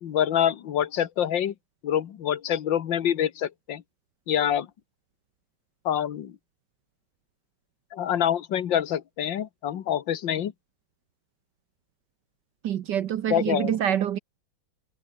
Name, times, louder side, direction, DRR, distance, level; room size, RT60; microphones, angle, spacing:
voice 1, 0.0-1.5 1.8-3.8 4.3-4.7 5.9-6.4 7.9-10.5 13.3-13.8, left 10 dB, 65° left, 1.9 m, -26 dB
voice 2, 12.6-14.2, right 10 dB, 65° right, 1.3 m, -26 dB
omnidirectional pair, 2.3 m